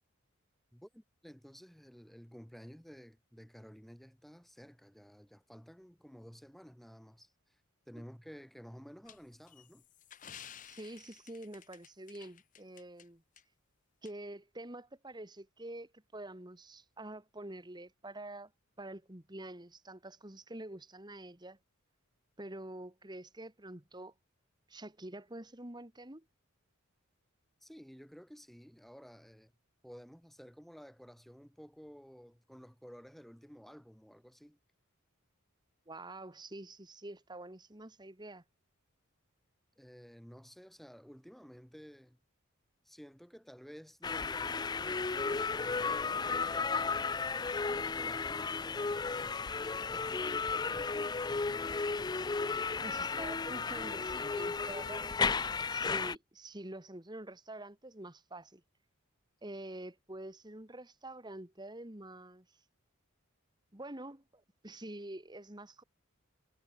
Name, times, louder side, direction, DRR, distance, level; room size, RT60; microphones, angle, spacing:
voice 1, 0.7-9.9 27.6-29.5 29.8-34.6 39.8-42.2 42.8-51.9 52.2-52.9, equal, ahead, 0.9 m, -54 dB
sound 1, 9.1-13.1 13.4-13.5 14.1-14.2, left 9 dB, 35° left, 0.7 m, -53 dB
voice 2, 10.6-13.2 14.0-18.5 18.8-21.6 22.4-24.1 24.7-26.3 35.9-38.4 52.8-55.4 55.7-58.6 59.4-62.5 63.7-65.8, right 1 dB, 20° right, 1.8 m, -47 dB
sound 2, 44.0-56.1, left 4 dB, 20° left, 0.4 m, -34 dB
head